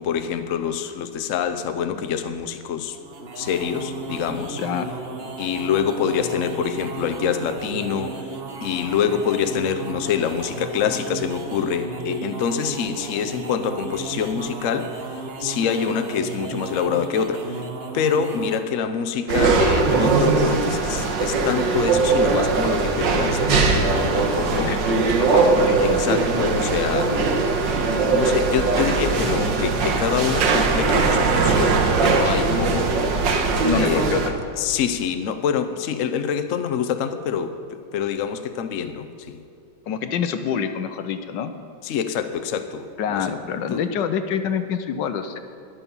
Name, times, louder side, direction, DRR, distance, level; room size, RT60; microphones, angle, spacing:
voice 1, 0.0-3.0 3.4-4.6 5.4-8.2 8.6-15.0 15.4-17.6 17.9-24.8 25.8-27.3 27.8-33.0 33.8-34.1 34.6-39.4 41.8-43.3 43.7-43.8, left 7 dB, 55° left, 9 dB, 0.9 m, -26 dB
sound 1, 2.9-18.8, right 3 dB, 40° right, 1.0 m, -34 dB
voice 2, 4.6-4.9 24.6-26.2 33.6-34.4 39.9-41.5 43.0-45.4, left 7 dB, 75° left, 9 dB, 1.4 m, -26 dB
sound 2, 19.3-34.3, right 4 dB, 80° right, 1.8 m, -20 dB
21.5 x 7.1 x 5.5 m, 2.5 s
omnidirectional pair, 2.0 m